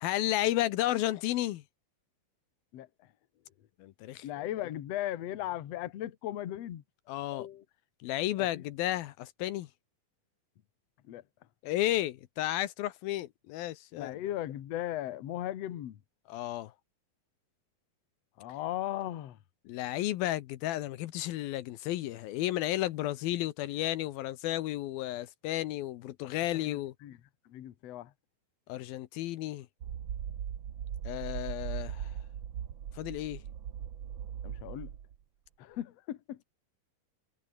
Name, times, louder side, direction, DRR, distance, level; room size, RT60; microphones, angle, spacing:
voice 1, 0.0-1.6 3.8-4.3 7.1-7.5 8.0-9.7 11.6-14.2 16.3-16.7 19.7-26.9 28.7-29.7 31.0-32.2 32.9-33.4, left 15 dB, 80° left, 2.7 m, -33 dB
voice 2, 4.2-6.8 7.3-7.6 8.5-8.6 11.1-11.2 14.0-16.0 18.4-19.4 26.5-27.2 27.5-28.1 34.4-34.9 35.6-36.4, left 13 dB, 55° left, 2.0 m, -37 dB
sound 1, 29.8-35.2, right 9 dB, 90° right, 1.0 m, -39 dB
omnidirectional pair, 4.3 m